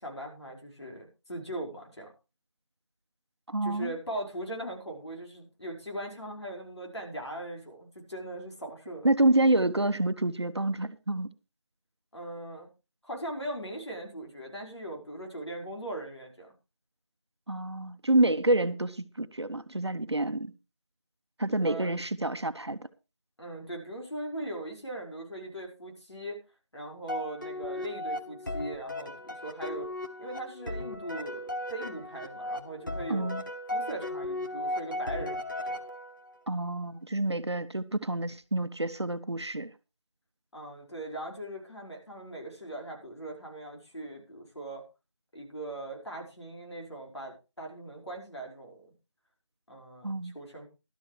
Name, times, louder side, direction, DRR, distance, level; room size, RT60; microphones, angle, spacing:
voice 1, 0.0-2.1 3.6-9.1 12.1-12.7 13.0-16.5 21.6-21.9 23.4-26.4 26.7-29.9 30.2-33.3 33.7-35.8 40.5-44.8 45.3-48.9 49.7-50.7, right 1 dB, 65° left, 5.0 m, -40 dB
voice 2, 3.5-3.9 9.0-11.3 17.5-20.5 21.4-22.8 33.1-33.4 36.5-39.7 50.0-50.3, right 2 dB, 65° right, 1.0 m, -28 dB
sound 1, 27.1-36.4, left 1 dB, 40° left, 1.4 m, -36 dB
15.5 x 12.5 x 3.2 m
figure-of-eight pair, 180°, 15 cm